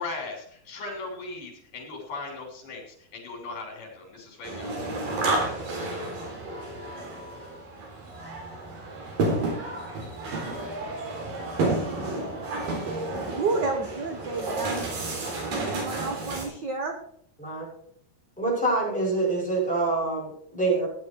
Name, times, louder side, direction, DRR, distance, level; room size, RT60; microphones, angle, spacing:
voice 1, 0.0-5.2 5.6-6.1, left 3 dB, 80° left, 2 dB, 5.0 m, -38 dB
sound 1, 4.4-16.5, right 2 dB, 85° right, 5.0 m, -31 dB
voice 2, 13.4-14.8 15.6-17.0, right 4 dB, 65° right, 4 dB, 1.1 m, -30 dB
voice 3, 18.4-20.9, right 2 dB, ahead, -4 dB, 6.5 m, -26 dB
16.0 x 10.0 x 4.6 m, 0.64 s
omnidirectional pair, 3.8 m